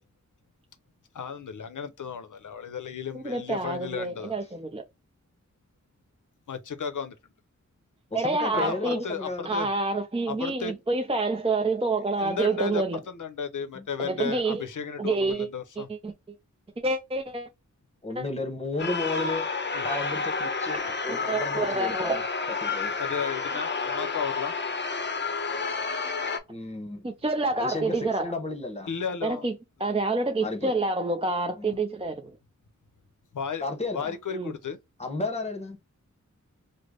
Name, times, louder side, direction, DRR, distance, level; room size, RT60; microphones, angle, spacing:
voice 1, 1.1-4.4 6.5-7.2 8.5-9.7 10.3-10.7 12.2-15.9 19.7-19.8 23.0-24.5 28.9-29.4 29.8-29.9 33.3-33.7 33.9-34.8, left 6 dB, 85° left, 0.7 m, -34 dB
voice 2, 3.1-4.8 8.1-9.1 9.4-13.0 14.0-14.6 15.0-15.5 15.8-16.1 16.8-17.5 18.2-18.3 20.7-22.2 27.0-28.3 29.2-29.5 29.8-32.3 34.3-34.5, right 3 dB, 20° right, 0.5 m, -28 dB
voice 3, 8.1-9.5 13.7-13.8 18.0-19.5 19.8-22.2 22.6-22.9 26.5-27.0 27.5-28.9 29.3-29.4 30.4-30.7 31.6-31.8 33.6-34.1 35.0-35.8, left 2 dB, 20° left, 1.0 m, -33 dB
sound 1, 18.8-26.4, left 4 dB, 35° left, 0.6 m, -30 dB
3.3 x 2.0 x 3.7 m
wide cardioid pair, 80°, 30 cm